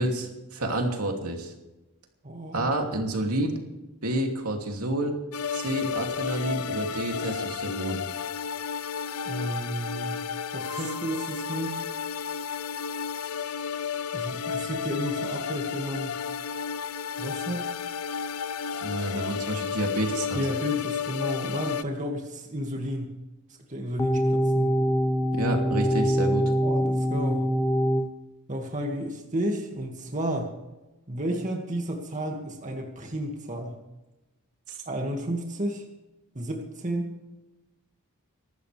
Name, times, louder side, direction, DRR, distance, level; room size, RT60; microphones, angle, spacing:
voice 1, 0.0-1.5 2.5-3.6 4.0-5.2 5.5-8.0 10.7-10.9 18.8-20.4 25.3-26.4 34.7-34.8, right 1 dB, 80° right, 2 dB, 2.8 m, -29 dB
voice 2, 2.2-2.9 9.3-10.2 10.5-11.8 14.1-16.2 17.2-17.7 20.3-23.1 23.7-24.8 26.6-27.5 28.5-30.5 31.1-33.7 34.9-35.8 36.3-37.1, equal, 35° right, 1 dB, 2.2 m, -32 dB
sound 1, 5.3-21.8, left 7 dB, 75° left, 0.7 m, -32 dB
sound 2, 24.0-28.1, equal, 15° left, 1.2 m, -24 dB
24.0 x 12.5 x 3.5 m, 1.0 s
head